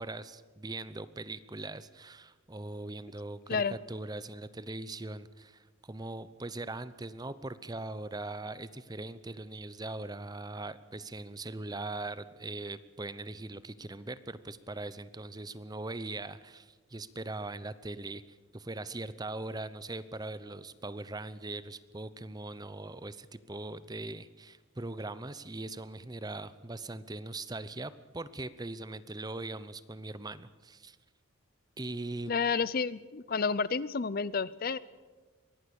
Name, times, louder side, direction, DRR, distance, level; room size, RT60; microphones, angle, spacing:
voice 1, 0.0-31.0 31.8-32.3, right 2 dB, 20° right, 15 dB, 0.7 m, -41 dB
voice 2, 32.3-34.8, left 5 dB, 45° left, 19 dB, 0.5 m, -30 dB
23.0 x 18.0 x 7.0 m, 1.4 s
head